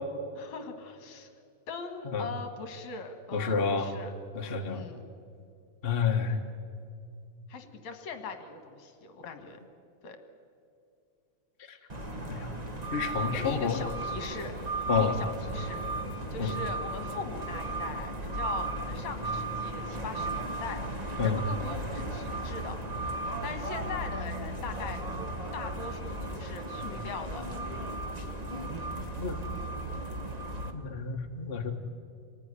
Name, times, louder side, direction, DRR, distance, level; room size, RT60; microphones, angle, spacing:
voice 1, 0.3-1.3 1.7-4.1 4.7-5.0 6.3-6.4 7.5-9.6 10.0-10.2 13.3-14.5 14.9-15.8 16.3-22.8 23.2-25.0 25.5-27.5, left 5 dB, 65° left, 6 dB, 2.7 m, -41 dB
voice 2, 3.3-3.9 4.3-4.9 5.8-6.4 12.2-12.5 12.9-13.8 14.9-15.1 16.4-16.6 21.2-21.4 29.2-29.4 30.7-31.7, left 5 dB, 30° left, 3 dB, 1.1 m, -29 dB
sound 1, 11.9-30.7, right 2 dB, 90° right, 0.3 m, -35 dB
27.5 x 19.0 x 9.9 m, 2.5 s
omnidirectional pair, 3.8 m